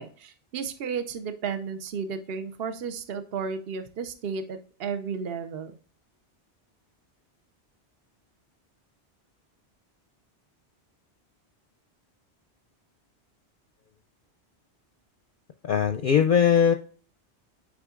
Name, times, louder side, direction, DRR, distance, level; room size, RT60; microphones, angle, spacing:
voice 1, 0.0-5.7, right 6 dB, 60° right, 9 dB, 1.0 m, -33 dB
voice 2, 15.6-16.7, left 8 dB, 60° left, 8 dB, 0.6 m, -20 dB
8.6 x 5.1 x 2.4 m, 0.41 s
omnidirectional pair, 1.2 m